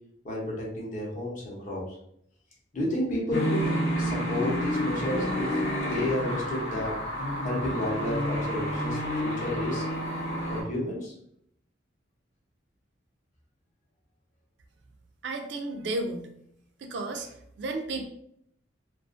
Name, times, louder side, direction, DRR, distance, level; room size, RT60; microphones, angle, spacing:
voice 1, 0.2-2.0 2.7-7.0 7.4-9.8 10.5-11.1, left 1 dB, 40° left, -3 dB, 0.7 m, -31 dB
sound 1, 3.3-10.6, equal, 75° left, 0.7 m, -29 dB
voice 2, 15.2-16.3 16.8-17.3 17.6-18.1, right 2 dB, 65° right, 5 dB, 0.3 m, -32 dB
2.4 x 2.3 x 2.4 m, 0.72 s
head